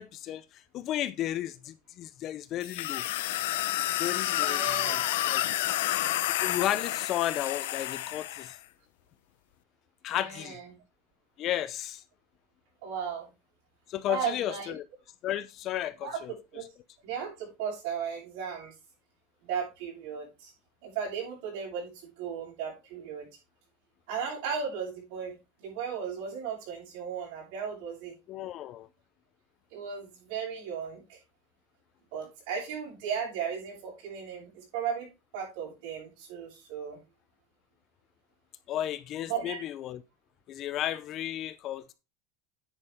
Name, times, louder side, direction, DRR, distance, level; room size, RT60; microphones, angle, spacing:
voice 1, 0.0-3.0 4.0-5.0 5.3-5.4 6.4-8.6 10.0-10.6 11.4-12.0 13.9-14.8 15.2-16.3 28.3-28.9 38.7-40.0 40.5-41.9, left 12 dB, 35° left, 0.6 m, -33 dB
sound 1, 2.6-8.6, left 15 dB, 85° left, 0.9 m, -30 dB
voice 2, 4.4-5.0 10.1-10.7 12.8-13.3 14.1-14.7 16.0-16.2 16.5-16.7 17.0-18.7 19.4-20.5 20.8-23.3 24.1-28.1 29.7-31.2 32.1-35.1 35.3-37.0 39.3-39.6, right 7 dB, 65° right, 7.2 m, -36 dB
9.9 x 8.4 x 3.6 m
supercardioid pair, 155°, 0 cm